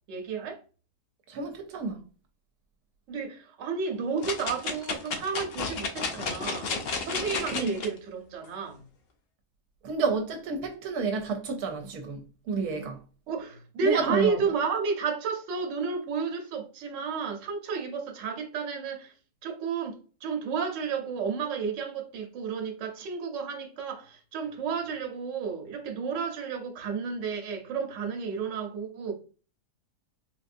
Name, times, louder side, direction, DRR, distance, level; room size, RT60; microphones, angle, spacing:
voice 1, 0.1-0.6 3.1-8.8 13.3-19.1 19.4-29.1, right 5 dB, 60° right, 1.0 m, -32 dB
voice 2, 1.3-2.0 7.5-7.7 9.8-13.0 13.8-14.4, right 4 dB, 80° right, 1.1 m, -30 dB
sound 1, 4.2-7.9 8.4-8.5, left 4 dB, 80° left, 0.5 m, -32 dB
3.7 x 2.5 x 2.5 m
omnidirectional pair, 1.7 m